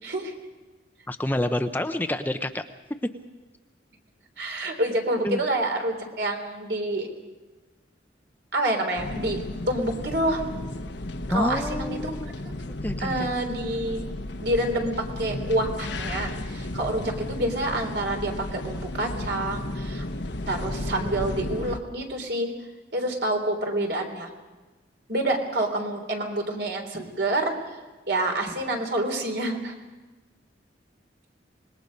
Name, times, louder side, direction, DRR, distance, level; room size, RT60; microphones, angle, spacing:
voice 1, 0.0-0.3 4.4-7.1 8.5-10.4 11.3-12.2 12.5-12.6 13.0-14.1 14.4-20.1 20.5-22.5 22.9-24.3 25.1-27.6 28.1-29.7, right 1 dB, 65° right, 3 dB, 3.5 m, -27 dB
voice 2, 1.1-2.6 3.0-3.1 5.2-5.4 11.3-12.3 12.8-13.3, left 1 dB, 10° left, 8 dB, 0.6 m, -28 dB
sound 1, 9.0-21.8, left 1 dB, 70° left, 1.1 m, -33 dB
25.5 x 21.0 x 5.3 m, 1.2 s
head